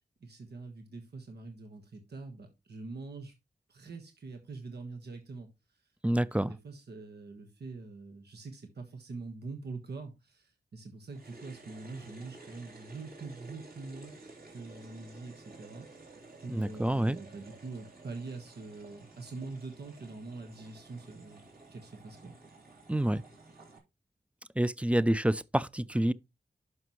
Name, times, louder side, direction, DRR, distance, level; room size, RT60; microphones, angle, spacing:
voice 1, 0.2-3.3 3.7-5.5 6.4-14.2 14.5-15.9 16.4-21.4 21.7-22.3, right 3 dB, 85° right, 1.4 m, -44 dB
voice 2, 6.0-6.5 16.5-17.2 22.9-23.2 24.6-26.1, right 1 dB, 5° right, 0.4 m, -28 dB
sound 1, 11.1-23.8, right 3 dB, 65° right, 3.6 m, -53 dB
11.5 x 5.8 x 3.1 m
wide cardioid pair, 80°, 17 cm